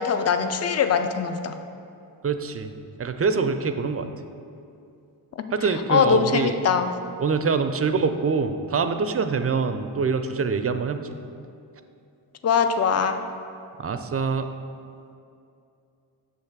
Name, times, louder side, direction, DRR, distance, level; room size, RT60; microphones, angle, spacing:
voice 1, 0.0-1.5 5.9-6.9 12.4-13.2, left 6 dB, 40° left, 9 dB, 0.4 m, -22 dB
voice 2, 2.2-2.7 3.0-4.1 5.5-6.6 7.2-11.1 13.8-14.5, right 5 dB, 35° right, 8 dB, 0.4 m, -24 dB
6.4 x 3.2 x 5.9 m, 2.6 s
cardioid pair, 45°, 43 cm